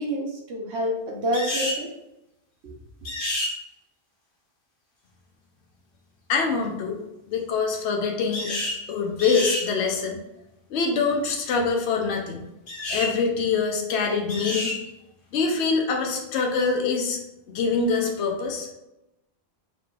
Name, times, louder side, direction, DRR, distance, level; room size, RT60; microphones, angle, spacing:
voice 1, 0.0-1.9 2.6-2.7, equal, 85° right, 0 dB, 1.1 m, -28 dB
sound 1, 1.3-1.8 3.1-3.5 8.3-8.8 9.2-9.7 12.7-13.1 14.3-14.8, left 1 dB, 55° left, 1.1 m, -29 dB
voice 2, 6.3-7.0 7.3-8.5 8.9-10.2 10.7-12.4 12.9-14.7 15.3-17.2 17.5-18.7, left 5 dB, 80° left, 1 dB, 0.9 m, -24 dB
4.7 x 3.0 x 2.4 m, 0.91 s
omnidirectional pair, 1.1 m